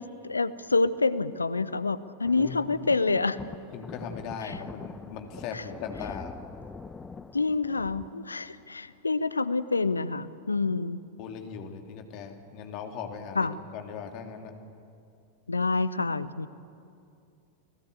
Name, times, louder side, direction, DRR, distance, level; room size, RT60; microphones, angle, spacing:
voice 1, 0.0-3.4 4.4-4.6 5.5-5.6 7.3-11.0 13.4-13.5 15.5-16.5, left 3 dB, 80° left, 16 dB, 0.7 m, -27 dB
sound 1, 2.2-8.1, left 4 dB, 15° left, 0.8 m, -44 dB
voice 2, 3.7-6.3 11.2-13.5 13.7-14.6, left 6 dB, 40° left, 4 dB, 2.9 m, -39 dB
30.0 x 19.0 x 8.1 m, 2.5 s
figure-of-eight pair, 90°, 0 cm